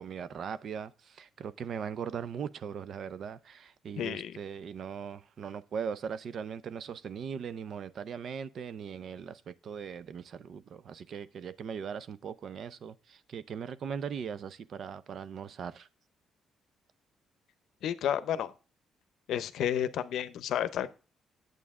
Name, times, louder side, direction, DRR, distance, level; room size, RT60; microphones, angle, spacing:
voice 1, 0.0-15.9, right 7 dB, 60° right, 0.6 m, -39 dB
voice 2, 4.0-4.3 17.8-18.5 19.3-20.9, left 10 dB, 75° left, 0.7 m, -31 dB
8.7 x 8.1 x 3.6 m
cardioid pair, 90°, 0 cm